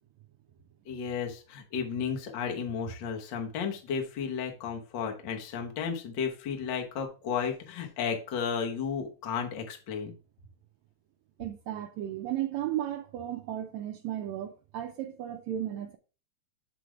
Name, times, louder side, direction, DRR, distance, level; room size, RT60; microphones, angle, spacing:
voice 1, 0.9-10.1, left 6 dB, 80° left, 1.0 m, -33 dB
voice 2, 11.4-16.0, right 12 dB, 85° right, 1.6 m, -34 dB
7.5 x 3.2 x 4.8 m
omnidirectional pair, 3.7 m